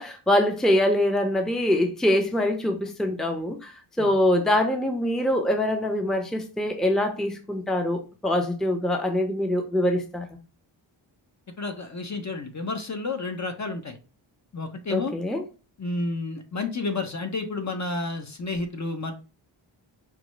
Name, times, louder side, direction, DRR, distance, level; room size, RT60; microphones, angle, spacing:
voice 1, 0.0-3.7 4.0-10.3 14.9-15.4, left 1 dB, ahead, 0.7 m, -24 dB
voice 2, 11.6-14.0 14.5-15.2 15.8-19.1, left 3 dB, 35° left, 0.8 m, -31 dB
5.0 x 2.1 x 3.1 m
cardioid pair, 60°, 49 cm